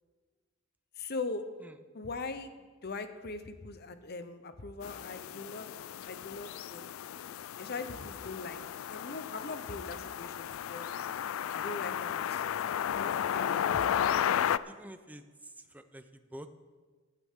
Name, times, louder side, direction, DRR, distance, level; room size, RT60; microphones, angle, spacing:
voice 1, 1.0-1.5 1.9-2.5 2.8-5.7 6.0-6.8 7.6-11.0 11.5-12.5 12.9-14.1 14.5-14.8, left 3 dB, 50° left, 9 dB, 0.9 m, -41 dB
sound 1, 4.8-14.6, left 9 dB, 85° left, 0.3 m, -34 dB
voice 2, 14.6-16.5, right 1 dB, 10° right, 9 dB, 0.6 m, -48 dB
15.0 x 12.0 x 3.8 m, 1.4 s
head